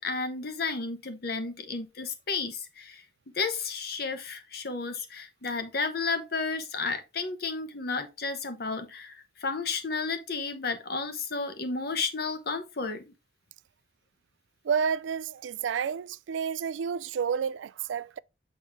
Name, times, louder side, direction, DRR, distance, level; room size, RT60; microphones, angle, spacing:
voice 1, 0.0-3.0 3.3-13.1, left 4 dB, 55° left, 1.0 m, -32 dB
voice 2, 14.6-18.2, right 7 dB, 85° right, 0.3 m, -30 dB
7.2 x 4.3 x 3.6 m
head